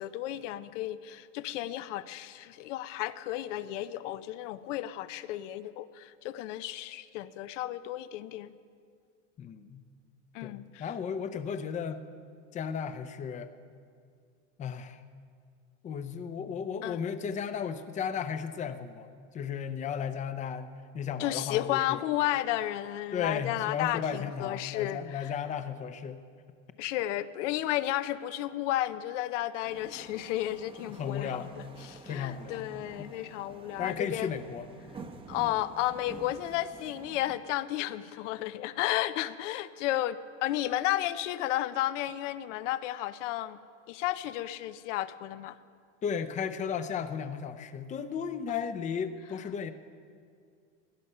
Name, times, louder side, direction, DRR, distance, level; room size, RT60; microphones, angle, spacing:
voice 1, 0.0-8.5 10.3-10.8 16.8-17.0 21.2-25.3 26.8-34.3 35.3-43.6 43.9-45.6 48.5-48.7, left 14 dB, 75° left, 14 dB, 0.7 m, -33 dB
voice 2, 9.4-9.8 10.4-12.0 12.5-13.5 14.6-15.0 15.8-22.0 23.1-26.2 30.8-31.5 32.0-32.7 33.0-33.2 33.8-34.7 46.0-49.7, left 7 dB, 20° left, 11 dB, 0.5 m, -35 dB
sound 1, 29.6-37.4, right 3 dB, 15° right, 0.8 m, -49 dB
18.0 x 11.5 x 5.5 m, 2.2 s
supercardioid pair, 150°, 37 cm